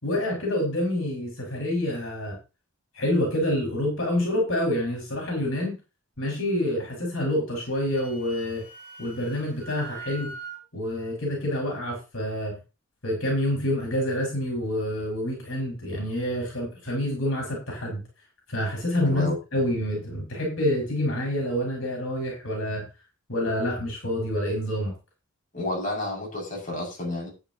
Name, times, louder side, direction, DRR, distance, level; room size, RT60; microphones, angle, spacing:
voice 1, 0.0-2.4 2.9-5.8 6.2-8.6 9.0-10.3 10.7-12.6 13.0-18.0 18.5-22.9 23.3-24.9, left 1 dB, 70° left, 5.9 m, -27 dB
Wind instrument woodwind instrument, 7.7-10.6, right 4 dB, 10° right, 5.2 m, -42 dB
voice 2, 19.0-19.4 25.5-27.3, left 2 dB, 40° left, 6.8 m, -30 dB
13.0 x 9.9 x 3.0 m
head